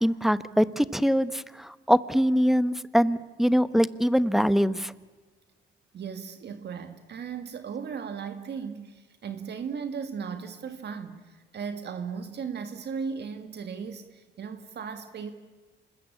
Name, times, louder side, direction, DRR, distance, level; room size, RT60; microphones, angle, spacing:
voice 1, 0.0-4.9, equal, ahead, 15 dB, 1.0 m, -23 dB
voice 2, 5.9-15.3, right 6 dB, 55° right, 8 dB, 1.9 m, -36 dB
27.0 x 20.5 x 8.5 m, 1.3 s
cardioid pair, 90°, 20 cm